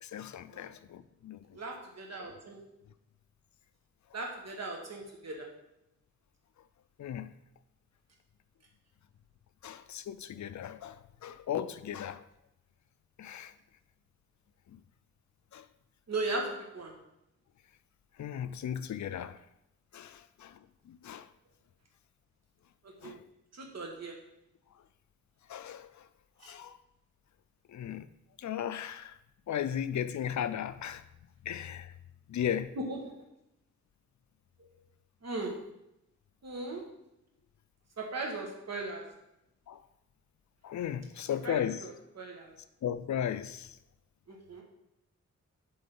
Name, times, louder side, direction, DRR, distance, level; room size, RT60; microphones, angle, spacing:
voice 1, 0.0-1.5 7.0-7.3 9.6-12.2 13.2-13.5 14.7-14.8 15.5-15.7 18.2-19.4 19.9-20.6 20.9-21.3 23.0-23.2 25.5-26.1 26.4-26.8 27.7-28.1 28.4-29.2 29.5-31.0 31.4-31.9 32.3-32.8 39.7-39.8 40.6-41.9 42.8-43.8, left 9 dB, 70° left, 0.4 m, -36 dB
voice 2, 1.5-2.6 4.1-5.5 16.1-16.9 22.8-23.1 23.5-24.2 26.4-26.5 32.8-33.0 35.2-35.7 36.4-36.9 38.0-39.1 41.4-42.5 44.3-44.6, right 2 dB, 60° right, 1.6 m, -38 dB
7.9 x 3.8 x 5.4 m
wide cardioid pair, 120°, 30 cm